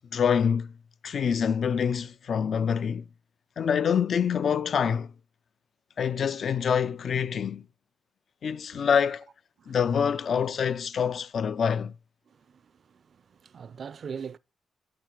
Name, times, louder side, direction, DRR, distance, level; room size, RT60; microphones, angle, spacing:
voice 1, 0.1-0.7 1.0-3.1 3.6-5.1 6.0-7.7 8.4-9.3 9.7-11.9, left 7 dB, 55° left, 0.3 m, -26 dB
voice 2, 12.3-14.4, right 6 dB, 50° right, 0.4 m, -42 dB
8.6 x 2.9 x 5.0 m
cardioid pair, 95°, 0 cm